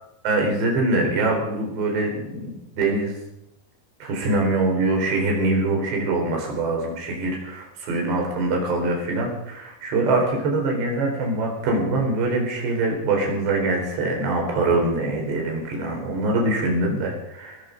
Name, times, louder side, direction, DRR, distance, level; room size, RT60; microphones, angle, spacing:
voice 1, 0.2-3.2 4.0-17.6, right 2 dB, 90° right, 1 dB, 6.5 m, -23 dB
18.0 x 14.5 x 5.2 m, 0.82 s
omnidirectional pair, 4.9 m